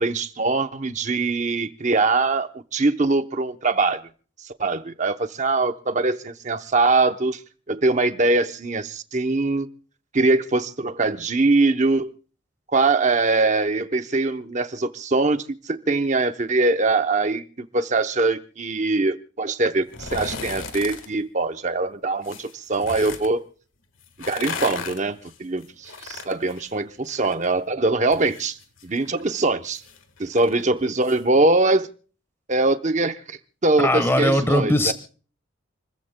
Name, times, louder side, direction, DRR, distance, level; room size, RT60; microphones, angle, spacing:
voice 1, 0.0-4.0 4.4-7.4 7.7-9.7 10.1-12.1 12.7-23.4 24.2-28.6 28.8-29.8 30.2-31.9 32.5-34.9, right 3 dB, 35° right, 0.8 m, -22 dB
sound 1, 19.9-21.1 22.2-23.3 24.0-27.5 27.8-31.2 31.6-31.7, left 5 dB, 75° left, 1.5 m, -36 dB
voice 2, 33.8-34.9, left 1 dB, 10° left, 1.2 m, -20 dB
29.0 x 14.5 x 2.2 m
head